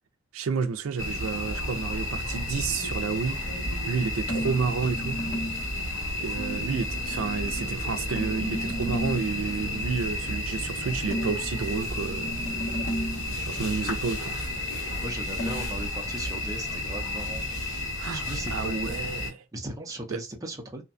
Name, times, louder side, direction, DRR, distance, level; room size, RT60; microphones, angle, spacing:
voice 1, 0.3-3.4 3.9-5.2 6.2-12.4 13.4-14.4 18.0-18.2 18.5-19.4, right 5 dB, 80° right, 0.4 m, -30 dB
sound 1, 1.0-19.3, left 1 dB, 65° left, 1.4 m, -32 dB
sound 2, 4.3-5.7 8.2-9.4 11.1-13.3 15.4-15.6, right 1 dB, 45° left, 1.6 m, -33 dB
voice 2, 13.6-14.0 14.8-17.4 18.1-19.2 19.5-20.8, right 1 dB, 15° right, 0.6 m, -38 dB
2.6 x 2.2 x 2.5 m
head